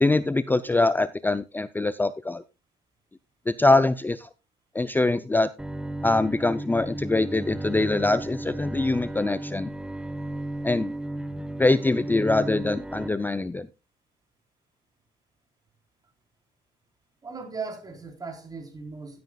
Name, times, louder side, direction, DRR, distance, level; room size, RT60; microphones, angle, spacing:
voice 1, 0.0-2.4 3.5-4.3 4.7-5.5 6.0-9.7 10.6-10.9 11.6-13.7, left 2 dB, 10° left, 0.5 m, -23 dB
Bowed string instrument, 5.6-13.1, right 1 dB, 5° right, 0.9 m, -34 dB
voice 2, 17.2-19.2, right 4 dB, 20° right, 4.0 m, -37 dB
15.0 x 9.4 x 2.3 m
cardioid pair, 110°, 17 cm